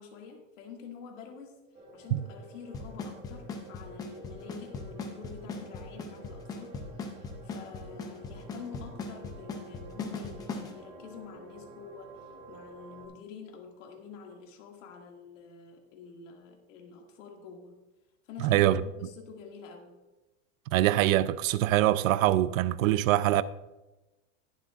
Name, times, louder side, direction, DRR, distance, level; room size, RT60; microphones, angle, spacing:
voice 1, 0.0-1.6 1.9-17.8 18.2-20.0, left 6 dB, 70° left, 2.2 m, -48 dB
sound 1, 1.7-13.1, right 2 dB, 20° right, 2.7 m, -50 dB
Drum kit / Snare drum / Bass drum, 2.7-10.7, left 4 dB, 10° left, 0.4 m, -37 dB
voice 2, 18.4-18.8 20.7-23.4, right 14 dB, 85° right, 0.6 m, -24 dB
20.5 x 7.4 x 2.5 m
supercardioid pair, 175°, 39 cm